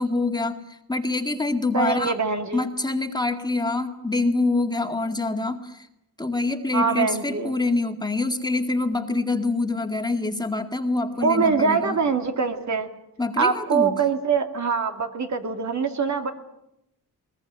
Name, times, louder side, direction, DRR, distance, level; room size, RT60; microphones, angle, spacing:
voice 1, 0.0-2.1 2.5-5.9 6.2-12.0 13.2-13.9, left 2 dB, 10° left, 4 dB, 2.1 m, -25 dB
voice 2, 1.7-2.6 6.7-7.5 11.2-12.9 13.4-16.3, right 5 dB, 55° right, 5 dB, 2.5 m, -23 dB
21.5 x 20.5 x 9.0 m, 0.85 s
cardioid pair, 100°, 35 cm